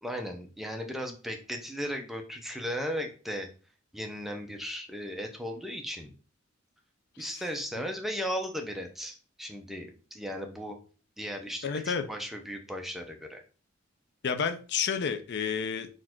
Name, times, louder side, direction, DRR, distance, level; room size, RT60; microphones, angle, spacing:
voice 1, 0.0-3.5 3.9-6.1 7.2-10.8 11.2-13.4, equal, ahead, 3 dB, 0.5 m, -36 dB
voice 2, 11.6-12.0 14.2-15.9, left 6 dB, 55° left, 9 dB, 0.4 m, -30 dB
4.1 x 2.5 x 4.3 m, 0.37 s
head